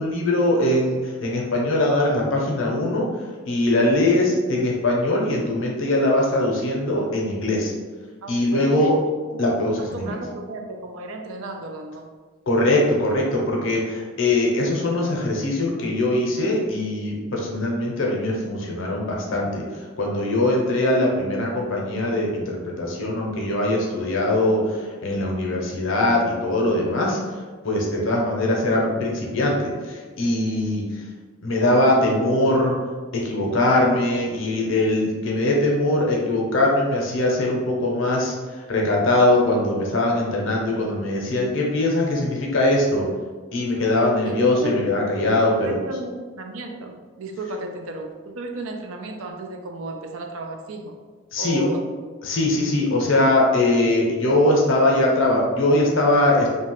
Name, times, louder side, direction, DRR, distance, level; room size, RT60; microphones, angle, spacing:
voice 1, 0.0-7.7 8.3-9.0 9.4-10.1 12.5-31.0 31.4-32.8 33.1-43.1 43.5-45.8 51.3-51.7 52.2-56.5, left 1 dB, 65° left, -2 dB, 0.6 m, -21 dB
voice 2, 8.2-9.0 9.3-12.1 28.8-28.9 44.2-44.8 45.6-50.9 51.4-51.8, right 2 dB, 75° right, 4 dB, 0.4 m, -34 dB
2.8 x 2.2 x 2.9 m, 1.4 s
head